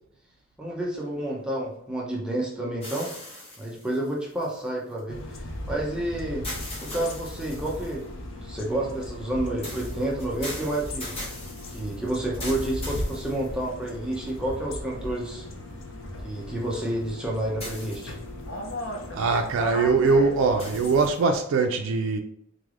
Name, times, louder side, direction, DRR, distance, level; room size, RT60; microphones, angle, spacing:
voice 1, 0.6-3.1 3.6-6.5 6.8-8.0 8.4-11.1 11.7-15.5 16.2-18.1, right 1 dB, 5° right, 0.6 m, -30 dB
sound 1, 2.8-5.0 6.4-8.1 9.6-13.9 14.5-14.6 17.6-18.4 20.6-21.4, left 1 dB, 30° left, 1.1 m, -40 dB
sound 2, 5.1-21.1, left 1 dB, 75° left, 0.6 m, -37 dB
voice 2, 19.1-22.2, right 4 dB, 90° right, 0.3 m, -22 dB
3.9 x 3.2 x 2.4 m
head